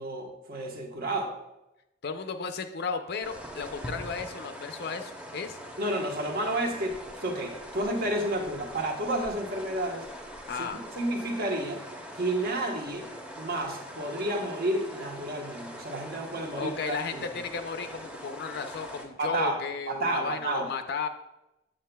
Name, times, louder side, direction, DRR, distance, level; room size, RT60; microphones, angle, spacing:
voice 1, 0.0-1.3 5.8-10.1 11.0-11.8 12.2-13.1 13.4-17.2 19.2-19.6 19.9-20.7, right 1 dB, 55° right, 2 dB, 1.0 m, -31 dB
voice 2, 2.0-5.6 10.5-10.8 16.5-21.1, left 5 dB, 60° left, 8 dB, 0.4 m, -34 dB
sound 1, 3.2-19.1, equal, 5° right, 0.8 m, -43 dB
7.8 x 7.3 x 2.2 m, 0.93 s
head